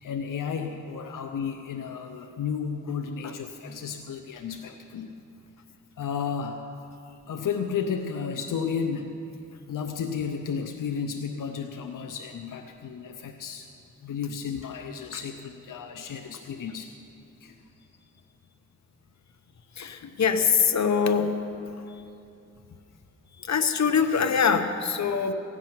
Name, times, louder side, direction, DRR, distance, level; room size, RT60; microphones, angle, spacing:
voice 1, 0.0-5.1 6.0-6.6 7.3-9.2 9.7-13.7 14.0-16.9 17.4-17.5 20.0-20.1, left 6 dB, 85° left, 5 dB, 0.7 m, -33 dB
voice 2, 19.8-21.4 23.5-25.3, left 6 dB, 60° left, 7 dB, 1.0 m, -23 dB
16.5 x 6.2 x 9.5 m, 2.6 s
cardioid pair, 60°, 31 cm